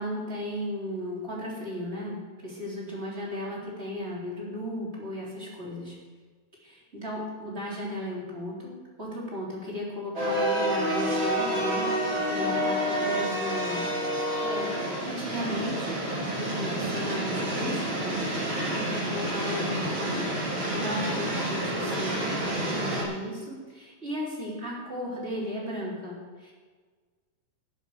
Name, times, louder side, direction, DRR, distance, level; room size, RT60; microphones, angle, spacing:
voice 1, 0.0-6.0 6.6-16.0 16.2-18.1 18.4-26.5, equal, 20° right, -5 dB, 3.9 m, -35 dB
sound 1, 10.2-23.0, right 1 dB, 40° right, 3.9 m, -29 dB
17.5 x 7.4 x 6.9 m, 1.5 s
omnidirectional pair, 3.7 m